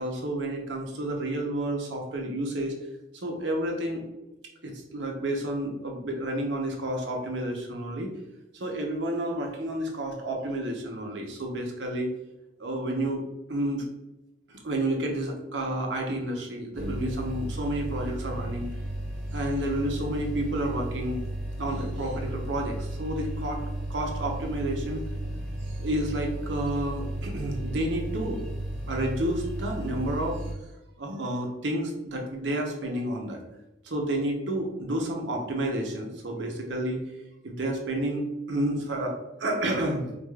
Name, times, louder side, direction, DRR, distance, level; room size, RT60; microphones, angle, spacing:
voice 1, 0.0-2.7 3.1-4.0 4.6-8.1 8.6-12.1 12.6-13.2 13.5-13.8 14.5-18.7 19.3-21.2 21.6-25.0 25.8-28.4 28.9-30.4 31.0-33.4 33.8-37.0 37.4-40.2, right 1 dB, 75° right, 1 dB, 0.8 m, -30 dB
sound 1, 16.7-30.5, right 1 dB, 5° left, 1.4 m, -34 dB
4.7 x 2.4 x 2.3 m, 0.95 s
head